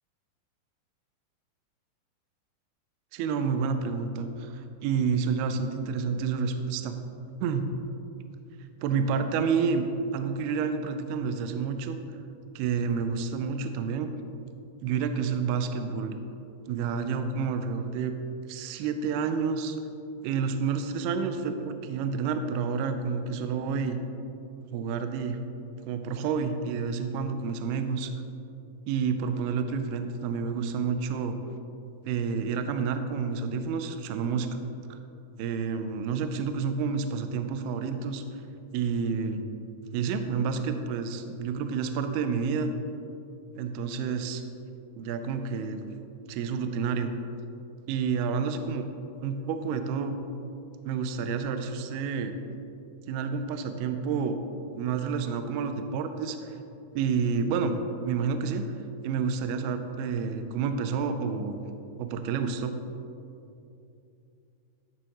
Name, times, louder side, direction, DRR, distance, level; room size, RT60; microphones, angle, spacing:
voice 1, 3.1-7.0 7.4-7.7 8.8-9.9 10.1-12.0 12.6-14.1 14.8-16.2 16.7-18.2 18.5-19.8 20.2-24.0 24.7-25.4 25.8-28.1 28.9-31.4 32.1-35.0 35.4-38.2 38.7-39.4 39.9-42.7 43.6-44.4 45.0-45.8 46.3-47.1 47.9-48.9 49.2-50.2 50.9-52.3 53.1-54.4 54.7-56.6 56.9-57.8 58.0-58.7 59.0-61.6 62.0-62.8, right 5 dB, 85° right, 7 dB, 2.3 m, -29 dB
13.5 x 7.8 x 3.0 m, 2.7 s
omnidirectional pair, 5.1 m